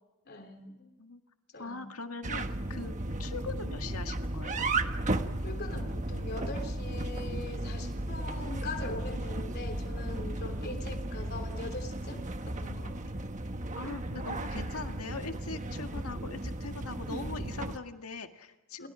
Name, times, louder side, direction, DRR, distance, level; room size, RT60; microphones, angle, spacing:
voice 1, 0.3-0.9 1.5-1.9 3.0-3.2 5.4-13.2 18.8-18.9, left 2 dB, 45° left, 3.4 m, -42 dB
voice 2, 1.6-2.9 3.2-4.7 13.7-18.9, left 4 dB, 75° left, 1.9 m, -41 dB
sound 1, 2.2-17.8, right 2 dB, 35° right, 1.3 m, -35 dB
29.5 x 29.0 x 5.0 m
head